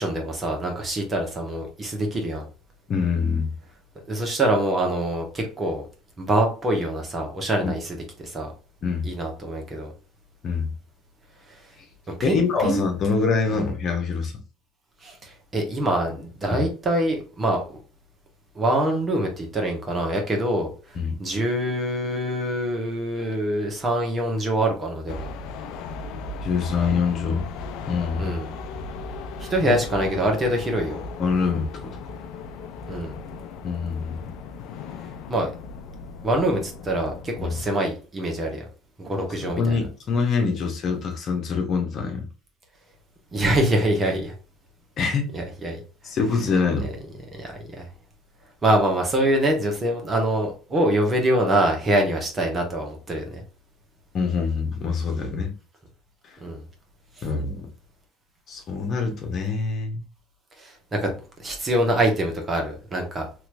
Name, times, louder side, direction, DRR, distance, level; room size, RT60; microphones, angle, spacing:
voice 1, 0.0-2.4 4.1-5.8 6.2-8.5 9.0-9.9 12.1-12.8 13.5-13.6 15.0-17.8 18.5-20.7 21.2-25.3 28.2-28.5 29.4-31.0 32.9-33.1 35.3-35.5 36.2-38.6 39.0-39.8 43.3-44.3 45.3-45.8 46.8-46.9 47.3-47.8 48.6-53.4 56.4-56.6 57.2-57.3 60.6-63.3, right 1 dB, 30° right, 1.3 m, -25 dB
voice 2, 2.9-3.5 7.6-7.7 8.8-9.1 10.4-10.7 12.2-14.3 16.5-16.6 21.0-21.2 26.4-27.5 27.9-28.4 29.6-29.7 31.2-31.9 33.6-34.3 37.4-37.6 39.1-42.2 45.0-45.3 46.0-46.9 54.1-55.5 57.2-57.7 58.5-60.0, left 5 dB, 50° left, 1.1 m, -25 dB
sound 1, 25.1-37.7, left 3 dB, 70° left, 0.5 m, -37 dB
3.2 x 2.9 x 2.5 m
supercardioid pair, 85°, 0 cm